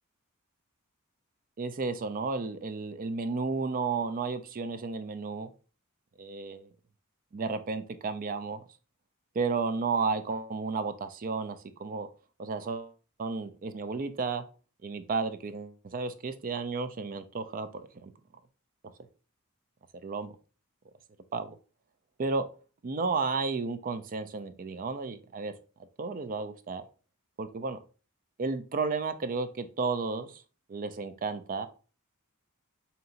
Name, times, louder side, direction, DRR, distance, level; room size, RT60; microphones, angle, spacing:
voice 1, 1.6-5.5 6.2-6.7 7.3-8.6 9.3-12.1 12.4-12.9 13.2-14.4 14.8-18.1 20.0-20.3 21.3-21.6 22.2-22.4 22.8-25.5 26.0-26.8 27.4-27.8 28.4-30.4 30.7-31.7, right 4 dB, 40° right, 10 dB, 0.4 m, -32 dB
5.3 x 2.8 x 2.5 m, 0.36 s
head